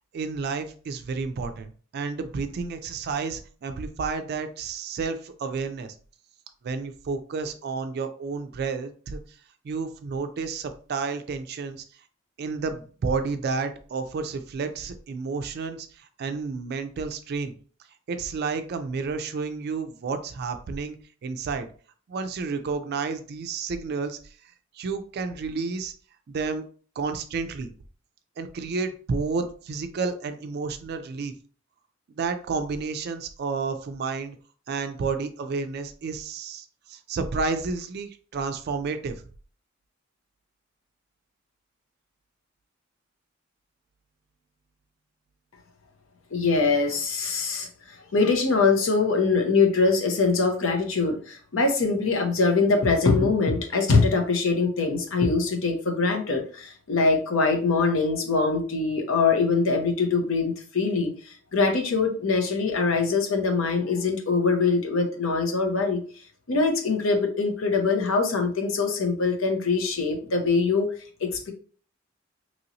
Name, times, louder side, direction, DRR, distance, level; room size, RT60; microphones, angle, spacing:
voice 1, 0.1-5.9 6.6-9.4 9.6-11.8 12.4-17.5 18.1-21.0 21.2-21.7 22.1-24.3 24.7-25.9 26.3-26.7 27.0-27.7 28.4-31.3 32.1-34.4 34.7-39.2, right 4 dB, 50° right, 8 dB, 0.3 m, -31 dB
voice 2, 46.3-66.0 66.5-70.9 71.2-71.5, left 4 dB, 70° left, 3 dB, 0.7 m, -23 dB
3.0 x 2.8 x 2.6 m, 0.42 s
head